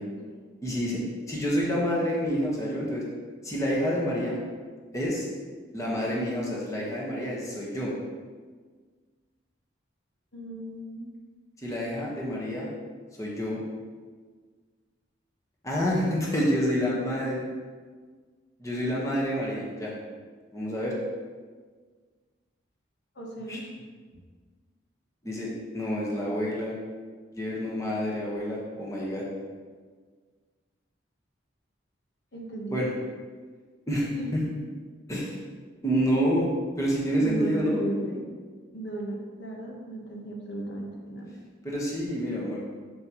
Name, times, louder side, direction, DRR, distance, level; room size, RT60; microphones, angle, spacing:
voice 1, 0.0-0.4 10.3-11.1 23.1-23.6 32.3-33.0 34.1-34.3 37.2-38.2 38.7-41.3, right 1 dB, 70° left, -1 dB, 1.3 m, -35 dB
voice 2, 0.6-3.0 3.4-4.4 4.9-5.3 5.7-7.9 11.6-12.7 13.2-13.6 15.6-17.4 18.6-19.9 20.5-20.9 23.5-23.6 25.2-26.7 27.3-29.2 32.7-32.9 33.9-34.5 35.1-35.4 35.8-36.5 36.8-37.8 41.6-42.6, equal, 15° left, -5 dB, 1.3 m, -28 dB
7.6 x 7.4 x 3.1 m, 1.5 s
head